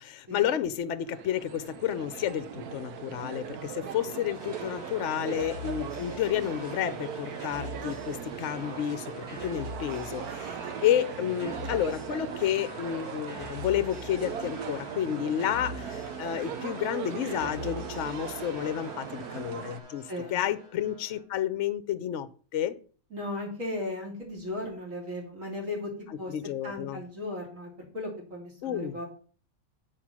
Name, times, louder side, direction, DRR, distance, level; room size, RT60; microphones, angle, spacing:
voice 1, 0.0-22.8 26.3-27.0 28.6-29.0, left 10 dB, 65° left, 0.8 m, -31 dB
sound 1, 1.0-19.8, right 8 dB, 90° right, 1.3 m, -39 dB
sound 2, 4.3-21.2, left 1 dB, 45° right, 4.6 m, -44 dB
voice 2, 20.1-20.4 23.1-25.9 26.2-26.3 26.6-29.0, left 1 dB, 60° right, 3.3 m, -36 dB
8.8 x 4.9 x 6.1 m
omnidirectional pair, 1.6 m